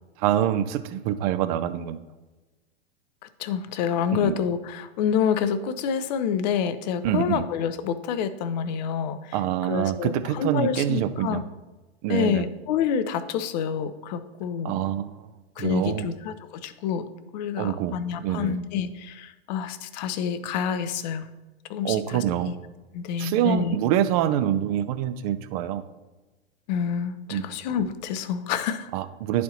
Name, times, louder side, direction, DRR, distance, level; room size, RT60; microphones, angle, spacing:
voice 1, 0.2-2.0 4.1-4.3 7.0-7.4 9.3-11.4 12.0-12.5 14.6-15.3 15.6-16.1 17.6-18.6 21.8-22.5 23.2-25.8 27.3-27.5 28.9-29.4, right 11 dB, 35° right, 12 dB, 0.5 m, -25 dB
voice 2, 3.4-9.4 9.7-11.4 12.1-14.7 15.6-17.0 17.3-21.3 21.7-22.5 22.9-23.8 26.7-28.9, left 7 dB, 45° left, 12 dB, 0.5 m, -28 dB
11.0 x 4.2 x 2.8 m, 1.1 s
figure-of-eight pair, 95°, 32 cm